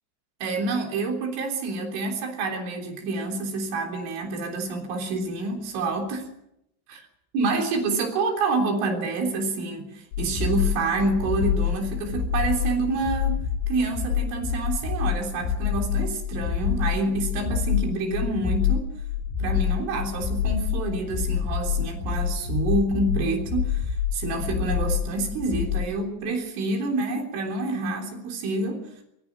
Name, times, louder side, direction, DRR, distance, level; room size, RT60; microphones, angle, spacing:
voice 1, 0.4-6.3 6.9-7.0 7.3-18.9 19.4-28.9, right 3 dB, 90° right, 2 dB, 6.1 m, -28 dB
sound 1, 10.1-26.0, left 8 dB, 80° left, 6.1 m, -27 dB
24.5 x 22.5 x 6.2 m, 0.78 s
omnidirectional pair, 5.5 m